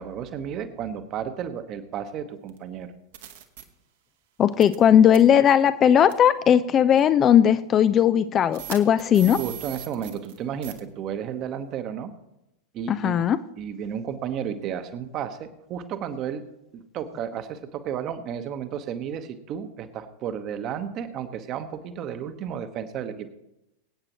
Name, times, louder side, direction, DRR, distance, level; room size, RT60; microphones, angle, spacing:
voice 1, 0.0-2.9 9.4-12.1 12.7-13.2 13.6-16.4 16.7-23.3, right 8 dB, 35° right, 10 dB, 1.1 m, -33 dB
sound 1, 2.5-2.6 3.1-3.6 4.6-4.8 5.1-5.2 6.1-6.3 7.0-7.1 8.5-10.4 10.6-10.8, right 13 dB, 55° right, 1.2 m, -39 dB
voice 2, 4.4-9.4 12.9-13.4, left 9 dB, 30° left, 13 dB, 0.4 m, -18 dB
23.5 x 8.9 x 3.0 m, 0.87 s
figure-of-eight pair, 90°, 0 cm